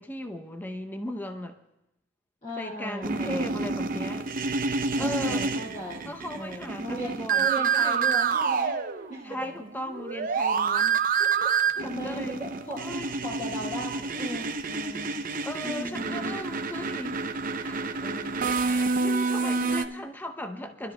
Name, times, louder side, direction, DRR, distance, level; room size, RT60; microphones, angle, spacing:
voice 1, 0.0-1.6 2.6-4.3 4.9-5.4 6.0-8.0 9.2-11.1 11.8-12.5 12.7-13.2 15.4-17.2 17.6-18.0 18.6-20.9, left 1 dB, 10° left, 6 dB, 0.6 m, -37 dB
voice 2, 2.4-3.5 4.9-9.4 11.2-15.2 15.6-16.4 18.0-18.6 19.0-19.7 20.6-20.7, equal, 40° left, -7 dB, 2.2 m, -38 dB
sound 1, 3.0-9.4 9.6-19.8, right 5 dB, 45° right, 0.6 m, -28 dB
26.0 x 12.0 x 2.2 m, 0.87 s
head